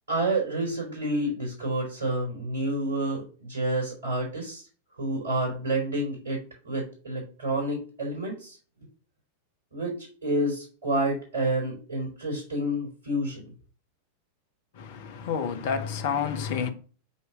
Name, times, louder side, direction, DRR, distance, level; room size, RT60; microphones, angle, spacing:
voice 1, 0.1-4.7 5.0-8.6 9.7-13.4, right 1 dB, 70° right, 4.7 m, -29 dB
voice 2, 14.8-16.7, left 7 dB, 50° left, 1.2 m, -29 dB
8.3 x 3.3 x 6.2 m
figure-of-eight pair, 90°, 0 cm